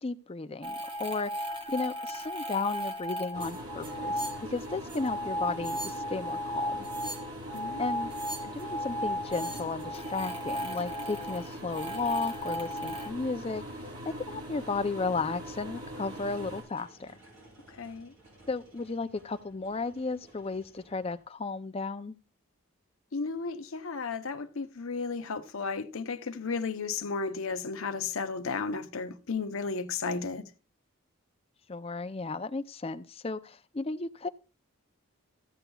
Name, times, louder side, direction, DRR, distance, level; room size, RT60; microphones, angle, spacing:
voice 1, 0.0-6.8 7.8-8.1 8.4-13.6 14.0-17.1 18.5-22.2 31.7-34.3, left 3 dB, 25° left, 0.4 m, -34 dB
sound 1, 0.6-13.1, equal, 25° right, 1.0 m, -35 dB
sound 2, 3.3-16.6, equal, 90° right, 3.8 m, -42 dB
sound 3, 12.7-12.8 13.7-13.8 15.9-21.4, right 1 dB, 70° right, 4.3 m, -57 dB
voice 2, 17.7-18.1 23.1-30.5, left 4 dB, 75° left, 0.8 m, -34 dB
15.0 x 7.9 x 2.3 m
head